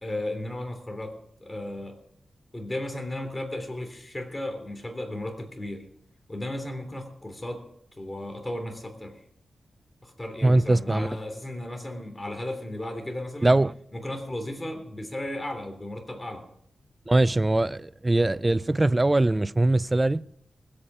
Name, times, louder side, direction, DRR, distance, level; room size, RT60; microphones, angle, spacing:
voice 1, 0.0-2.0 2.5-5.8 6.3-7.7 8.0-9.2 10.0-13.5 13.9-16.5, left 1 dB, 20° left, 3.4 m, -35 dB
voice 2, 10.4-11.1 13.4-13.7 17.1-20.2, right 2 dB, 25° right, 0.4 m, -22 dB
20.5 x 8.7 x 4.8 m
cardioid pair, 65°, 0 cm